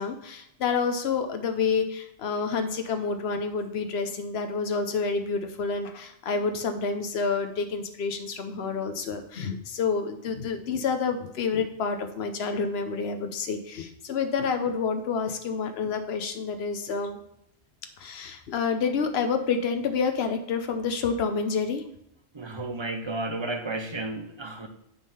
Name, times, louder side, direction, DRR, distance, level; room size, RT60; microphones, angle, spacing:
voice 1, 0.0-17.2 18.0-21.8, left 5 dB, 65° left, 7 dB, 1.0 m, -28 dB
voice 2, 22.3-24.7, right 2 dB, 30° right, 6 dB, 0.6 m, -32 dB
9.2 x 3.7 x 5.5 m, 0.73 s
omnidirectional pair, 1.2 m